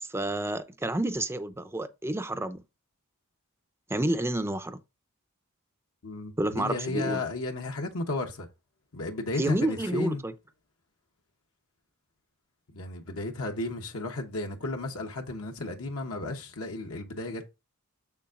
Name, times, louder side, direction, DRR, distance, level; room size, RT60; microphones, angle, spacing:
voice 1, 0.0-2.6 3.9-4.8 6.4-7.2 9.4-10.3, right 1 dB, 10° right, 0.5 m, -29 dB
voice 2, 6.0-8.5 8.9-10.2 12.7-17.5, left 2 dB, 65° left, 1.0 m, -33 dB
7.0 x 6.5 x 2.5 m
head